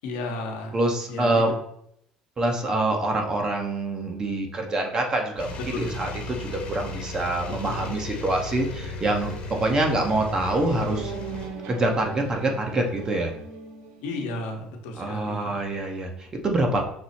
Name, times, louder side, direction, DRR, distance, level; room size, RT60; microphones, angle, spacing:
voice 1, 0.0-0.8 1.1-1.5 5.7-5.9 7.6-7.9 14.0-15.6, left 2 dB, 85° left, 2 dB, 0.9 m, -33 dB
voice 2, 0.7-1.5 2.4-11.1 11.7-13.3 15.0-16.8, right 2 dB, 25° right, 2 dB, 0.8 m, -25 dB
sound 1, 5.4-11.5, left 2 dB, 45° left, 0.9 m, -36 dB
sound 2, 10.0-14.7, right 4 dB, 75° right, 0.7 m, -39 dB
6.0 x 2.0 x 4.1 m, 0.73 s
cardioid pair, 120°, 3 cm